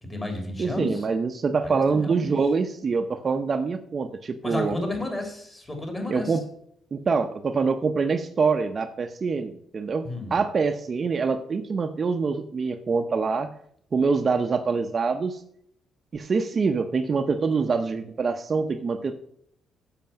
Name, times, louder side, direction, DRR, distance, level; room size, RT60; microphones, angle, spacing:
voice 1, 0.0-1.0 1.6-2.4 4.4-6.4 10.0-10.4, left 1 dB, 20° left, 3 dB, 3.2 m, -32 dB
voice 2, 0.6-4.8 6.1-6.4 6.9-13.5 13.9-15.4 16.1-19.2, right 4 dB, 40° right, 7 dB, 0.7 m, -25 dB
7.5 x 6.7 x 5.7 m, 0.68 s
cardioid pair, 90°, 0 cm